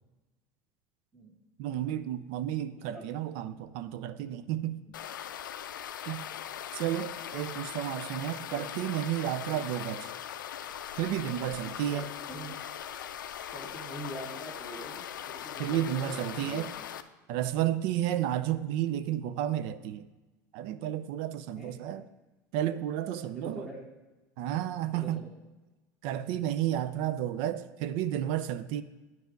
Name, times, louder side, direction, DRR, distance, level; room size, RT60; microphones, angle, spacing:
voice 1, 1.6-4.8 6.1-6.3 6.7-10.1 11.0-12.1 15.6-16.7 17.3-20.1 20.5-22.0 22.5-23.7 24.4-25.2 26.0-28.8, right 11 dB, 65° right, 0.5 m, -32 dB
voice 2, 2.6-3.1 6.1-6.4 8.5-8.6 11.9-12.6 13.5-16.7 21.5-21.8 23.2-23.9 24.9-25.3, right 1 dB, 5° right, 1.5 m, -45 dB
sound 1, 4.9-17.0, left 10 dB, 90° left, 0.4 m, -40 dB
9.4 x 4.8 x 5.1 m
hypercardioid pair, 90°, 10 cm